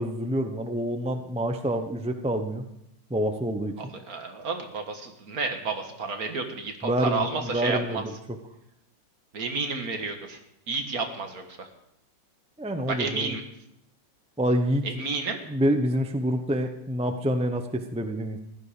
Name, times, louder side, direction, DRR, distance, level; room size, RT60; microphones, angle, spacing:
voice 1, 0.0-2.6 3.1-3.9 6.8-8.1 12.6-13.3 14.4-14.9 15.5-18.4, equal, 5° right, 6 dB, 0.4 m, -27 dB
voice 2, 3.8-8.0 9.3-10.4 10.7-11.7 12.9-13.4 14.8-15.4, right 4 dB, 50° right, 5 dB, 1.9 m, -31 dB
15.5 x 12.0 x 5.0 m, 0.78 s
omnidirectional pair, 2.0 m